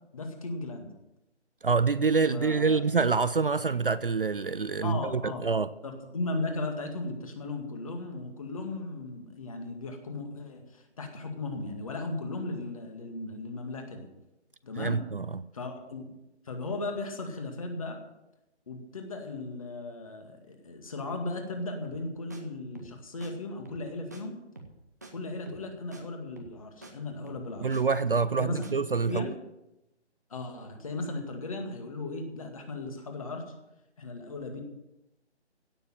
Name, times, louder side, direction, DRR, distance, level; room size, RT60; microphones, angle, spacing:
voice 1, 0.1-0.9 2.3-2.8 4.8-5.4 5.8-14.1 14.6-15.0 15.5-16.1 16.5-18.0 18.7-24.4 25.1-27.8 28.4-28.6 29.1-29.3 30.3-33.4 34.0-34.6, left 2 dB, 30° left, 2.1 m, -36 dB
voice 2, 1.6-5.7 14.8-15.4 27.6-29.3, right 4 dB, 50° right, 0.5 m, -26 dB
sound 1, 21.8-22.0 22.3-22.4 22.7-22.9 23.2-23.3 23.6-23.9 24.1-24.2 24.5-24.8 25.0-25.1 25.5-25.7 25.9-26.0 26.4-26.6 26.8-26.9 27.3-27.8 28.2-28.4 28.6-28.7, right 2 dB, 15° right, 0.8 m, -47 dB
16.5 x 6.9 x 9.0 m
figure-of-eight pair, 170°, 35 cm